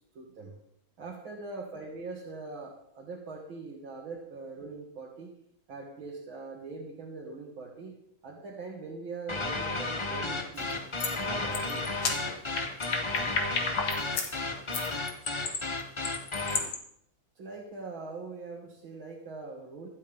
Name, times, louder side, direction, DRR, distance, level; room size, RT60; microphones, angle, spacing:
voice 1, 0.1-0.5 1.0-5.3 5.7-8.0 8.2-10.8 11.2-11.9 17.4-19.9, right 3 dB, 70° right, -3 dB, 2.8 m, -42 dB
sound 1, 9.3-16.7, left 3 dB, 50° left, 0.3 m, -33 dB
sound 2, 10.6-10.7 11.0-11.2 11.5-14.3 14.7-16.8, left 5 dB, 70° left, 2.4 m, -32 dB
25.0 x 8.4 x 3.6 m, 0.71 s
omnidirectional pair, 2.3 m